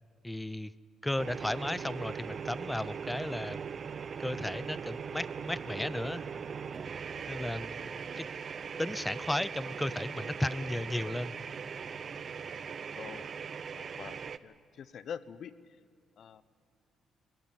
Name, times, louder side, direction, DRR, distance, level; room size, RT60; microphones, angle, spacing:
voice 1, 0.2-0.7 1.0-3.6 4.2-6.2 7.3-7.8 8.2-8.3 8.8-11.3, left 1 dB, 10° left, 17 dB, 0.7 m, -34 dB
sound 1, 1.2-14.4, right 6 dB, 50° right, 0.7 m, -40 dB
voice 2, 7.8-8.3 12.9-13.3 13.7-15.5 16.2-16.4, left 8 dB, 65° left, 16 dB, 0.9 m, -45 dB
22.0 x 18.5 x 9.7 m, 2.5 s
cardioid pair, 90°, 0 cm